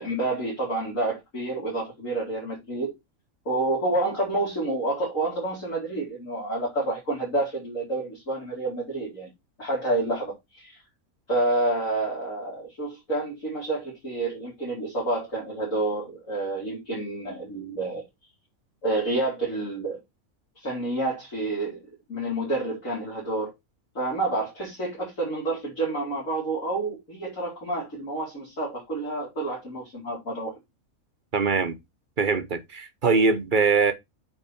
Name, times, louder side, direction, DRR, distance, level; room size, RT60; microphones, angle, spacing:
voice 1, 0.0-2.9 3.4-9.3 9.6-10.8 11.3-18.1 18.8-20.0 20.6-21.8 22.1-23.5 23.9-30.5, right 2 dB, 65° left, 4.7 m, -29 dB
voice 2, 31.3-31.8 32.2-33.9, right 4 dB, 40° right, 1.1 m, -22 dB
8.7 x 4.6 x 4.4 m
omnidirectional pair, 1.5 m